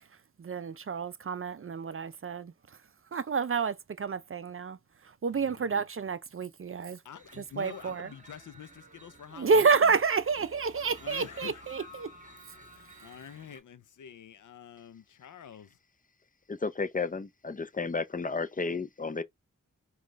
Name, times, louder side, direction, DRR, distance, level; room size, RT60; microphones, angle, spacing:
voice 1, 0.4-2.5 3.1-4.8 5.2-7.0 7.4-8.1 9.3-12.1, right 5 dB, 45° right, 0.5 m, -29 dB
voice 2, 5.3-5.7 6.8-9.9 11.0-11.9 12.6-15.8, left 8 dB, 70° left, 0.5 m, -47 dB
sound 1, 7.2-13.6, equal, 25° right, 1.2 m, -53 dB
voice 3, 16.5-19.2, left 4 dB, 25° left, 0.5 m, -32 dB
5.0 x 2.4 x 3.2 m
cardioid pair, 45°, 31 cm